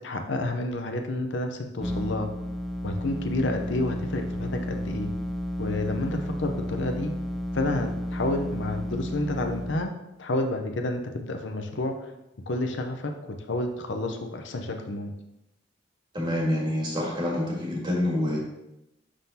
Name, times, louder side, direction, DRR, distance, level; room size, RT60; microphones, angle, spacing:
voice 1, 0.0-2.3 2.8-5.1 5.6-7.1 7.5-9.9 10.2-12.1 12.5-15.1, left 2 dB, 75° left, 5 dB, 0.7 m, -30 dB
sound 1, 1.8-9.8, left 1 dB, ahead, 0.4 m, -32 dB
voice 2, 16.1-18.4, left 1 dB, 25° right, -3 dB, 1.7 m, -27 dB
11.0 x 3.8 x 2.8 m, 0.89 s
head